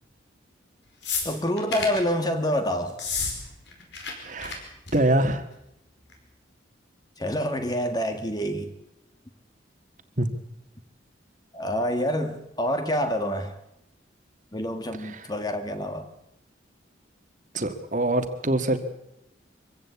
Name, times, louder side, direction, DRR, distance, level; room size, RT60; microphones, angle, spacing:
sound 1, 1.0-2.0 2.9-3.3 3.6-4.1 4.4-4.5 4.9-5.2 6.1-6.2, left 5 dB, 65° left, 5.2 m, -30 dB
voice 1, 1.2-3.0 7.2-8.7 11.5-13.5 14.5-16.1, equal, 20° left, 8 dB, 1.6 m, -27 dB
voice 2, 4.2-4.6 4.9-5.5 10.2-10.3 15.0-15.3 17.5-18.8, right 1 dB, 40° right, 8 dB, 1.8 m, -24 dB
24.5 x 16.0 x 8.3 m, 0.85 s
head